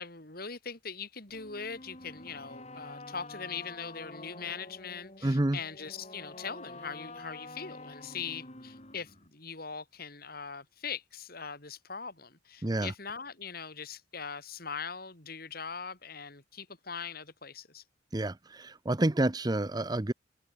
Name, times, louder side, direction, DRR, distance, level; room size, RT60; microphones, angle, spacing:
voice 1, 0.0-17.8, left 6 dB, 50° left, 3.6 m, -41 dB
sound 1, 1.3-9.3, left 2 dB, 35° left, 6.7 m, -47 dB
voice 2, 5.2-5.6 12.6-12.9 18.1-20.1, right 1 dB, 20° right, 0.7 m, -29 dB
head